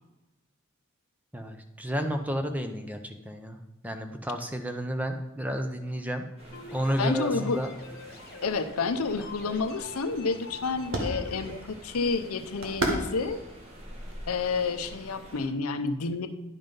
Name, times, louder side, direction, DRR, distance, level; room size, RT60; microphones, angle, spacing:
voice 1, 1.3-6.2 6.7-7.7, equal, 5° right, 6 dB, 0.6 m, -31 dB
sound 1, 6.4-15.5, right 1 dB, 30° right, 1.9 m, -47 dB
sound 2, 6.5-11.6, left 3 dB, 45° left, 1.1 m, -46 dB
voice 2, 7.0-7.6 8.4-13.4 14.3-16.3, left 4 dB, 85° left, 10 dB, 0.7 m, -29 dB
sound 3, 8.8-15.1, right 1 dB, 70° right, 1.8 m, -36 dB
11.0 x 5.6 x 5.3 m, 1.0 s
head